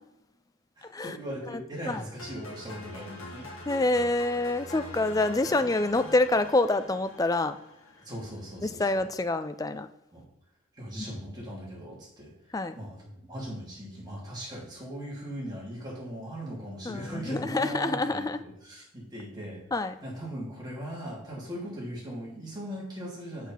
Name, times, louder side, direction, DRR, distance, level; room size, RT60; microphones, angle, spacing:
voice 1, 0.8-3.5 8.0-9.0 10.1-10.2 10.7-12.3 12.7-19.6 20.0-23.5, equal, 20° right, -5 dB, 2.9 m, -39 dB
voice 2, 1.5-2.0 3.7-7.6 8.6-9.9 11.0-11.1 12.5-12.8 16.8-18.4 19.7-19.9, left 2 dB, 15° left, 10 dB, 0.4 m, -27 dB
sound 1, 2.2-8.3, left 1 dB, 70° left, 1.9 m, -44 dB
6.5 x 5.8 x 5.7 m, 0.86 s
head